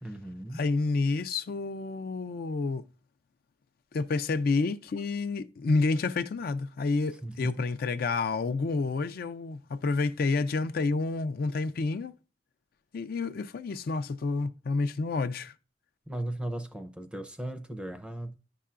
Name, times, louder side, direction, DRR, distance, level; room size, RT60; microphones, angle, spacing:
voice 1, 0.0-0.6 7.2-7.5 16.1-18.3, right 1 dB, 5° right, 0.5 m, -37 dB
voice 2, 0.5-2.8 3.9-12.1 12.9-15.5, left 3 dB, 55° left, 0.4 m, -29 dB
10.0 x 5.6 x 2.4 m
head